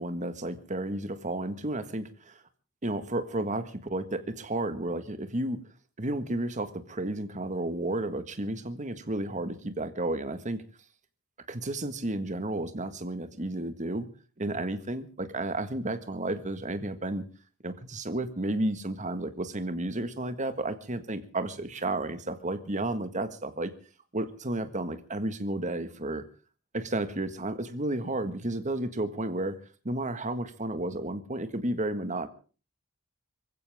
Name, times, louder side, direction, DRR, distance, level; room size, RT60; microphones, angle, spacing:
voice 1, 0.0-2.4 2.8-5.6 6.0-10.6 11.5-14.1 14.4-17.2 17.6-23.7 24.1-26.2 26.7-29.6 29.9-32.3, right 1 dB, 35° right, 10 dB, 1.6 m, -32 dB
25.5 x 15.5 x 3.6 m, 0.37 s
head